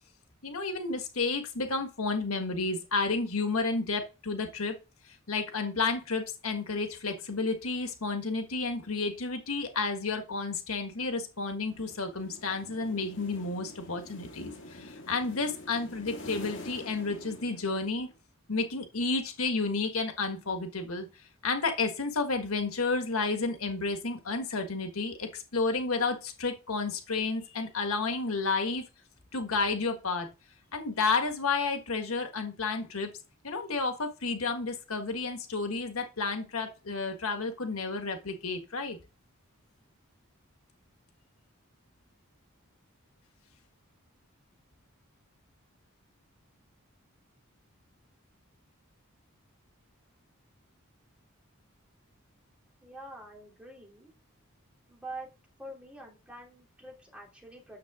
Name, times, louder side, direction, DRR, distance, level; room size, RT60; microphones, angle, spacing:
voice 1, 0.4-4.8 5.3-18.1 18.5-21.1 21.4-28.9 29.3-30.3 30.7-33.1 33.4-39.0, left 3 dB, 85° left, 6 dB, 1.5 m, -31 dB
sound 1, 11.7-18.2, left 1 dB, 60° left, 2.2 m, -46 dB
voice 2, 52.8-54.1 54.9-55.3 55.6-57.8, right 2 dB, 5° right, -2 dB, 3.1 m, -45 dB
9.4 x 7.0 x 3.6 m, 0.30 s
head